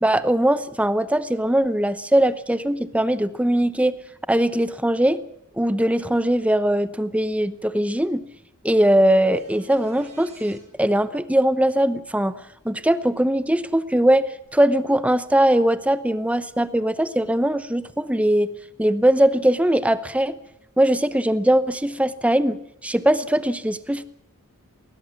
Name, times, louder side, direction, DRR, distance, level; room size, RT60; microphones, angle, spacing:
voice 1, 0.0-4.0 4.3-5.2 5.6-8.3 8.6-18.5 18.8-20.4 20.8-24.0, right 1 dB, 5° right, 14 dB, 0.8 m, -20 dB
sound 1, 9.3-10.6 14.4-14.5, right 3 dB, 30° right, 6.1 m, -48 dB
20.0 x 19.5 x 7.3 m, 0.80 s
head